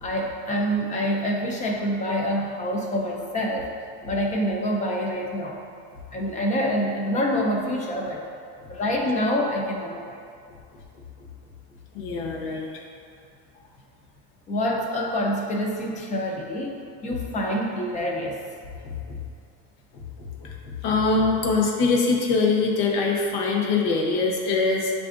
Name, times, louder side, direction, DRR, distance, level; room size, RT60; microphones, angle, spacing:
voice 1, 0.0-3.7 4.0-5.6 6.1-8.2 8.7-10.2 14.5-18.4, equal, 25° left, 0 dB, 0.4 m, -26 dB
voice 2, 11.9-12.7 20.4-20.5 20.8-24.9, left 4 dB, 70° left, -1 dB, 0.8 m, -23 dB
7.5 x 2.5 x 2.4 m, 2.4 s
cardioid pair, 145°, 32 cm